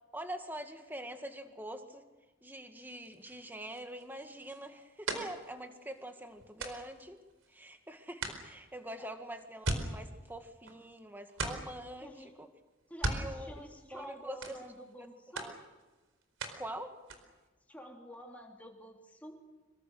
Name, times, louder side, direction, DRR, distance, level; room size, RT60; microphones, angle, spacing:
voice 1, 0.1-2.0 2.4-7.2 7.5-12.5 13.1-14.6 15.0-15.1 15.4-15.6 16.6-17.0, right 1 dB, 10° right, 6 dB, 1.9 m, -44 dB
sound 1, 2.9-7.8 8.2-11.0 11.3-11.9 12.8-14.1 14.4-15.0 15.4-16.7 17.0-17.5, right 2 dB, 80° right, 4.5 m, -40 dB
voice 2, 12.0-12.3 12.9-15.5 17.7-19.5, equal, 5° left, 1 dB, 3.4 m, -49 dB
26.5 x 24.5 x 6.6 m, 1.2 s
head